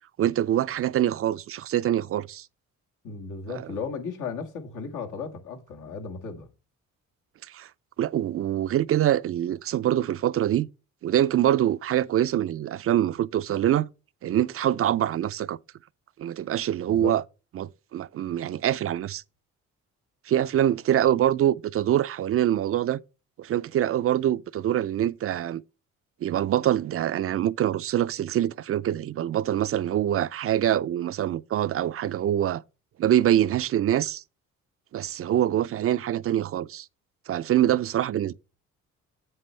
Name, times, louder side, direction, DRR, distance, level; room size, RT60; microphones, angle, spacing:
voice 1, 0.2-2.5 7.5-7.7 8.0-10.7 11.0-13.9 14.2-15.6 16.2-17.2 17.5-19.2 20.3-23.0 23.4-25.6 26.2-32.6 33.0-34.2 34.9-36.9 37.3-38.3, right 11 dB, 50° right, 0.4 m, -24 dB
voice 2, 3.0-6.5 16.9-17.2, left 5 dB, 80° left, 1.8 m, -35 dB
7.7 x 7.7 x 3.2 m
cardioid pair, 90°, 30 cm